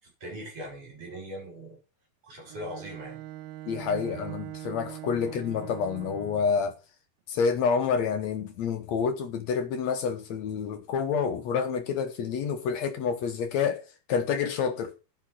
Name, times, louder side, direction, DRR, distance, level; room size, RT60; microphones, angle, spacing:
voice 1, 0.0-1.8 2.2-3.2 3.8-4.3 5.2-5.3, equal, 40° right, 7.7 m, -41 dB
Bowed string instrument, 2.5-6.6, right 15 dB, 80° right, 2.4 m, -42 dB
voice 2, 3.7-6.7 7.3-15.0, left 6 dB, 70° left, 1.7 m, -28 dB
12.0 x 5.9 x 6.2 m
omnidirectional pair, 4.5 m